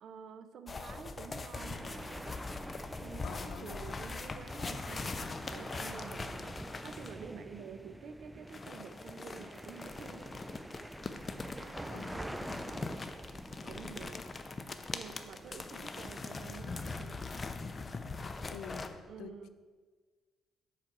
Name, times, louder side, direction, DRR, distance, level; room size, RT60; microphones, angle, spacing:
voice 1, 0.0-2.3 3.0-5.1 5.5-6.6 6.8-10.3 11.5-12.4 13.6-14.2 14.9-17.2 19.1-19.5, right 6 dB, 65° right, 10 dB, 0.6 m, -49 dB
sound 1, 0.7-7.2 8.5-18.9, left 3 dB, 30° left, 0.6 m, -42 dB
sound 2, 1.5-17.2, right 1 dB, 10° right, 0.3 m, -47 dB
voice 2, 3.2-3.7 11.9-12.2 18.5-19.5, left 7 dB, 85° left, 12 dB, 0.4 m, -47 dB
7.6 x 4.9 x 5.9 m, 1.5 s
cardioid pair, 90°, 0 cm